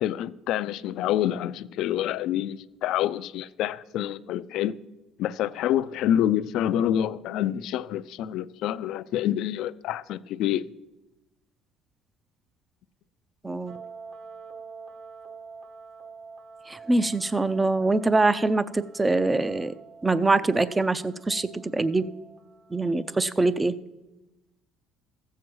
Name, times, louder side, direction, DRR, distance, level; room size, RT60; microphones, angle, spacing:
voice 1, 0.0-4.8 5.2-10.6, left 11 dB, 65° left, 0.4 m, -27 dB
voice 2, 13.4-13.8 16.7-19.7 20.0-22.0 22.7-23.8, right 3 dB, 15° right, 0.4 m, -24 dB
sound 1, 13.7-23.3, right 5 dB, 60° right, 1.3 m, -47 dB
14.5 x 7.5 x 4.7 m
cardioid pair, 130°, 0 cm